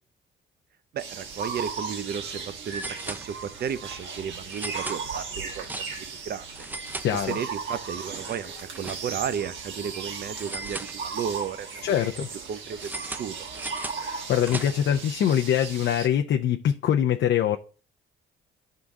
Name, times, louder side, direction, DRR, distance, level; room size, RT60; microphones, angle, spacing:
voice 1, 0.9-6.7 7.1-11.9 12.5-13.3, right 8 dB, 55° right, 0.6 m, -34 dB
sound 1, 1.0-16.1, right 5 dB, 70° right, 1.6 m, -37 dB
sound 2, 1.7-1.8 2.0-2.1 2.7-3.7 4.5-6.2 6.5-7.7 8.0-9.4 10.4-11.5 12.8-15.0, right 2 dB, 10° right, 0.4 m, -39 dB
voice 2, 7.0-7.4 11.8-12.3 14.0-17.6, left 10 dB, 65° left, 0.5 m, -24 dB
11.0 x 3.8 x 3.5 m
cardioid pair, 90°, 20 cm